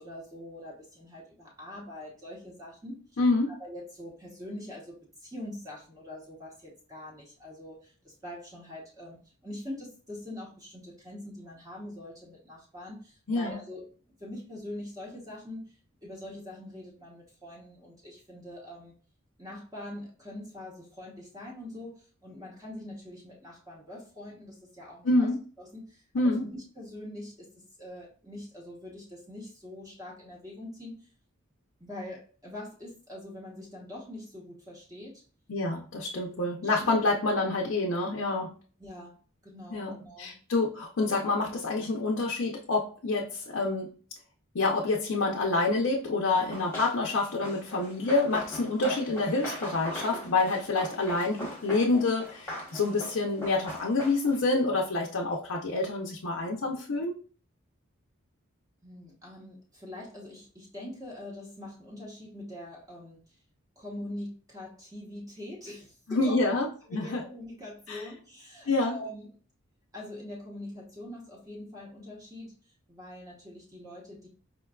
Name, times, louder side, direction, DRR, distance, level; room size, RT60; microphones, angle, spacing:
voice 1, 0.0-3.2 3.5-9.2 9.4-13.9 14.2-15.8 16.0-18.9 19.4-25.3 25.6-27.5 27.8-31.1 31.8-35.2 36.1-36.3 36.8-36.9 38.8-40.3 58.8-63.3 63.8-66.5 66.9-69.4 69.9-72.5 72.9-74.3, left 1 dB, 15° right, -3 dB, 0.8 m, -43 dB
voice 2, 3.2-3.5 13.3-13.6 25.0-25.4 26.1-26.5 35.5-38.5 39.7-43.9 44.5-57.2 66.1-67.2 67.9-68.0 68.7-69.0, left 2 dB, 65° left, 0 dB, 0.5 m, -27 dB
Run, 46.3-54.5, left 1 dB, 10° left, 1.0 m, -41 dB
4.9 x 2.2 x 2.3 m, 0.40 s
head